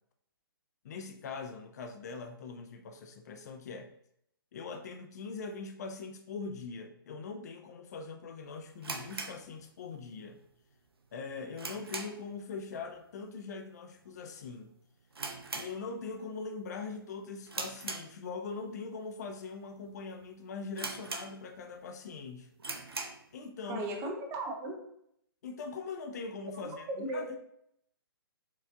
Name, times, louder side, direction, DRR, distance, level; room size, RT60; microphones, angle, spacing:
voice 1, 0.8-3.9 4.5-10.4 11.1-14.7 15.5-22.5 23.3-23.9 25.4-27.3, left 4 dB, 45° left, 6 dB, 0.4 m, -42 dB
sound 1, 8.8-10.2 10.4-10.5 11.0-12.4 12.7-13.0 13.3-13.4 14.0-14.3 14.6-14.7 15.1-16.3 16.6-16.9 17.5-18.6 19.2-19.3 19.9-20.0 20.2-20.3 20.8-21.7 22.1-22.2 22.6-23.3, right 3 dB, 80° right, 0.6 m, -40 dB
voice 2, 23.7-24.9 26.6-27.4, right 1 dB, 20° right, 3 dB, 0.6 m, -37 dB
4.5 x 2.5 x 3.4 m, 0.72 s
figure-of-eight pair, 130°, 13 cm